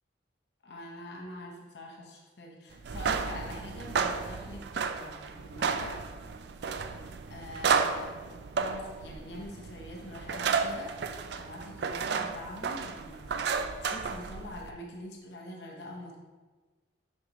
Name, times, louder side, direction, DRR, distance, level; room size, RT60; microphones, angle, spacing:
voice 1, 0.6-6.0 7.3-8.1 8.6-16.2, left 1 dB, 60° left, -1 dB, 0.9 m, -45 dB
sound 1, 2.8-14.7, right 5 dB, 60° right, 0.3 m, -32 dB
6.2 x 5.4 x 3.0 m, 1.4 s
head